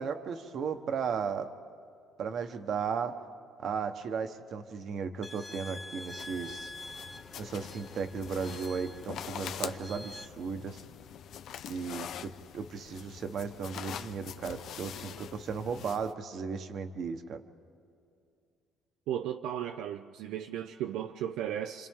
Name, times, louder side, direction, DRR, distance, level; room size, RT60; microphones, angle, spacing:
voice 1, 0.0-1.5 2.2-3.2 3.6-6.7 7.4-10.8 11.7-17.4, right 6 dB, 50° right, 1.1 m, -35 dB
sound 1, 5.2-10.3, left 2 dB, 10° left, 0.7 m, -46 dB
sound 2, 6.2-16.1, left 9 dB, 60° left, 0.6 m, -44 dB
voice 2, 19.1-21.9, right 10 dB, 80° right, 0.5 m, -35 dB
29.5 x 26.0 x 3.7 m
cardioid pair, 125°, 0 cm